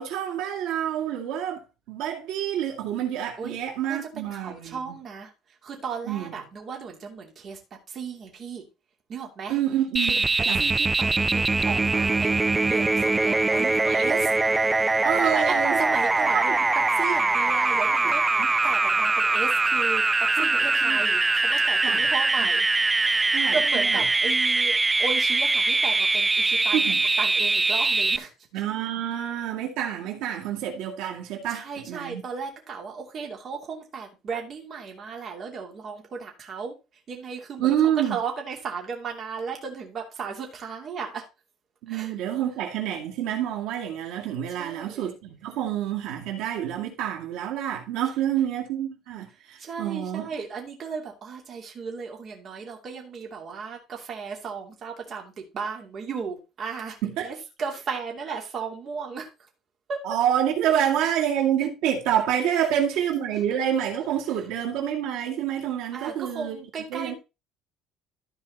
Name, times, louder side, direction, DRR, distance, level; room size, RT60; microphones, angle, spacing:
voice 1, 0.0-1.6 1.9-5.0 6.0-6.3 9.5-10.7 15.0-15.8 16.3-16.5 18.0-18.5 20.4-21.0 21.8-22.0 22.4-22.5 23.3-24.0 26.7-27.0 28.5-32.2 37.6-38.2 41.8-50.3 57.0-57.3 60.0-66.6 66.9-67.1, right 10 dB, 80° right, 2.2 m, -28 dB
voice 2, 3.9-5.3 5.6-7.6 7.9-8.7 9.1-9.6 10.6-14.3 15.2-18.2 18.6-20.0 20.3-22.7 22.9-26.8 27.2-28.3 31.5-36.7 37.1-37.8 38.1-41.3 41.9-42.1 44.5-45.1 49.6-57.0 57.2-59.3 59.9-60.0 60.8-61.1 62.5-62.7 65.9-67.2, right 5 dB, 35° right, 2.6 m, -35 dB
sound 1, 10.0-28.2, right 3 dB, 10° right, 0.4 m, -22 dB
13.5 x 4.8 x 4.0 m
cardioid pair, 165°, 0 cm